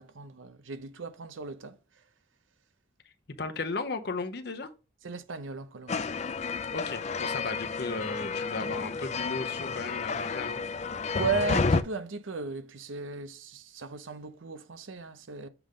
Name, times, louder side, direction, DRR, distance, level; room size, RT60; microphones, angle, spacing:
voice 1, 0.0-1.8 5.0-6.1 11.1-15.5, right 4 dB, 90° right, 0.7 m, -36 dB
voice 2, 3.4-4.7 6.7-10.6, left 3 dB, 55° left, 0.8 m, -35 dB
sound 1, 5.9-11.8, left 4 dB, 35° left, 0.4 m, -31 dB
7.1 x 3.6 x 3.7 m
head